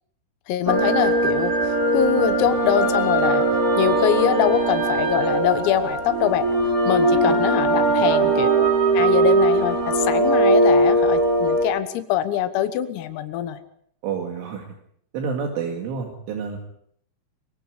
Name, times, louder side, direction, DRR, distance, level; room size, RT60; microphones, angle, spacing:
voice 1, 0.5-3.5 3.8-6.5 6.9-13.6, left 11 dB, 90° left, 10 dB, 4.0 m, -24 dB
sound 1, 0.7-11.6, right 2 dB, 20° right, 3.2 m, -20 dB
voice 2, 14.0-14.7 15.1-16.6, right 6 dB, 70° right, 1 dB, 4.5 m, -29 dB
24.0 x 23.0 x 5.0 m, 0.66 s
omnidirectional pair, 5.9 m